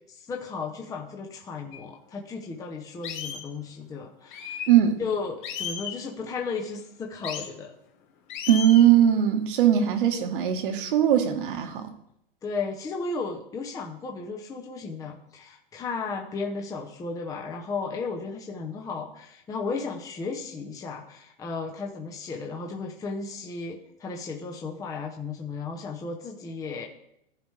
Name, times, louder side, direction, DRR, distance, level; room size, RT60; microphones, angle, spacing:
voice 1, 0.1-4.7 5.0-7.7 12.4-26.9, left 4 dB, 10° left, 1 dB, 0.8 m, -34 dB
sound 1, 1.7-1.8 2.4-2.5 3.0-3.5 4.3-4.7 5.4-6.0 7.2-7.5 8.3-8.9, left 8 dB, 55° left, 1.5 m, -34 dB
voice 2, 4.7-5.0 8.5-11.9, right 10 dB, 65° right, 6 dB, 1.5 m, -20 dB
15.0 x 5.1 x 3.4 m, 0.77 s
hypercardioid pair, 140°, 29 cm